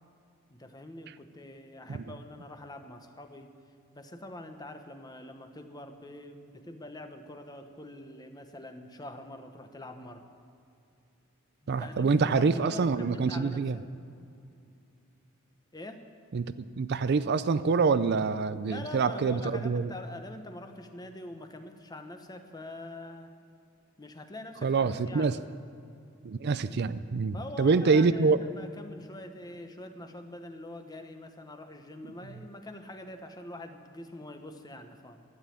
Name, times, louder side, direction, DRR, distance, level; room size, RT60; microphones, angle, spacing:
voice 1, 0.5-3.6 3.9-10.3 11.6-13.8 15.7-16.1 18.7-23.3 24.0-25.4 27.3-35.2, left 1 dB, 20° left, 6 dB, 1.1 m, -44 dB
voice 2, 11.7-13.8 16.3-19.9 24.6-25.4 26.2-28.4, right 4 dB, 55° right, 13 dB, 0.4 m, -26 dB
12.5 x 9.5 x 10.0 m, 2.5 s
head